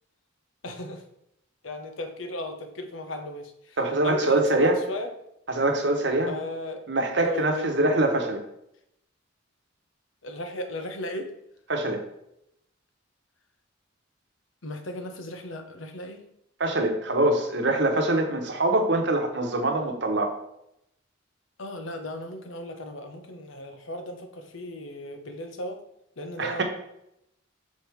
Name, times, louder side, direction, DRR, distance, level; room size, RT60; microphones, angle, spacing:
voice 1, 0.6-1.0 1.6-3.8 4.0-5.1 6.3-6.8 7.3-7.7 10.2-11.3 14.6-16.2 21.6-25.8 26.2-26.6, left 1 dB, 75° left, 6 dB, 0.9 m, -36 dB
voice 2, 3.8-4.8 5.5-6.3 6.9-8.4 11.7-12.0 16.6-20.3 26.4-26.6, right 2 dB, 60° right, 3 dB, 1.0 m, -24 dB
6.3 x 3.5 x 4.6 m, 0.80 s
head